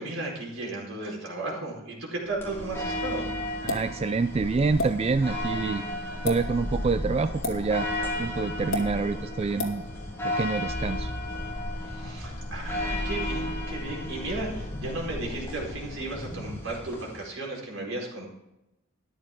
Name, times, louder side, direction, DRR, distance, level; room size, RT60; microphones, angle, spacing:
voice 1, 0.0-3.3 11.8-18.3, right 2 dB, 75° right, -2 dB, 4.7 m, -35 dB
sound 1, 2.3-16.9, equal, 35° left, 1.4 m, -37 dB
sound 2, 2.4-17.2, left 1 dB, 10° left, 3.1 m, -36 dB
voice 2, 3.6-5.8 6.2-7.9 8.2-9.8 10.2-11.1, right 4 dB, 30° right, 11 dB, 0.3 m, -27 dB
sound 3, 3.7-3.9 4.8-4.9 6.1-6.4 7.4-7.6 8.7-8.9 9.6-9.8, left 1 dB, 75° left, 2.2 m, -28 dB
13.5 x 11.0 x 3.8 m, 0.92 s
head